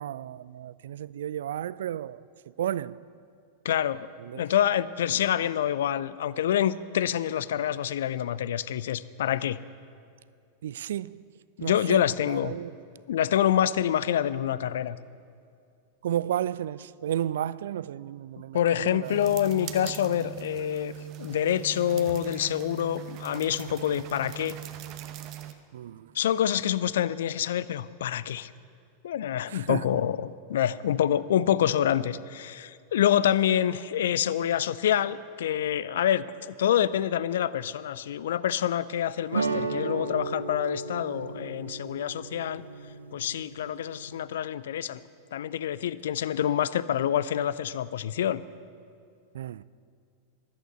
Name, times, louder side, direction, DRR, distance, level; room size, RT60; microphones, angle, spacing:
voice 1, 0.0-2.2 2.6-3.0 4.2-4.4 5.1-5.3 10.6-11.2 11.6-12.7 16.0-19.3 25.7-26.1 29.5-30.0 49.3-49.6, right 11 dB, 60° right, 0.3 m, -33 dB
voice 2, 3.6-4.1 4.3-9.6 11.6-12.5 13.1-15.0 18.5-20.9 21.2-24.5 26.1-28.5 29.0-42.6 43.1-45.0 45.3-48.4, left 10 dB, 60° left, 0.4 m, -27 dB
sound 1, 19.0-25.5, right 12 dB, 40° right, 0.9 m, -40 dB
sound 2, 39.3-44.2, right 3 dB, 75° right, 0.8 m, -34 dB
14.0 x 11.5 x 8.0 m
figure-of-eight pair, 90°, 0 cm